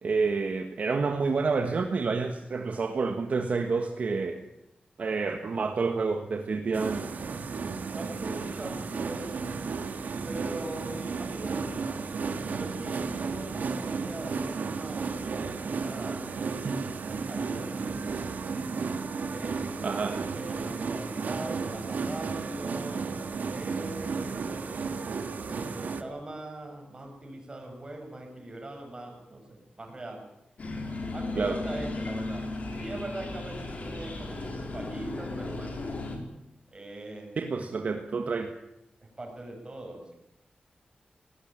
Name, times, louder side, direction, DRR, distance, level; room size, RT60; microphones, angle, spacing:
voice 1, 0.0-4.4 5.0-7.1 16.6-16.7 19.8-20.2 31.4-31.6 37.4-38.5, right 4 dB, 55° right, 5 dB, 1.5 m, -29 dB
sound 1, 6.7-26.0, right 5 dB, 75° right, 1.7 m, -33 dB
voice 2, 7.9-9.6 10.2-12.0 12.5-16.4 17.3-18.3 19.3-25.1 25.4-30.2 31.1-32.5 32.8-35.8 36.7-37.3 39.2-40.1, right 1 dB, 30° right, 2 dB, 6.8 m, -41 dB
sound 2, 30.6-36.2, left 2 dB, 55° left, 4.2 m, -35 dB
19.5 x 18.5 x 9.0 m, 0.87 s
wide cardioid pair, 155°, 3 cm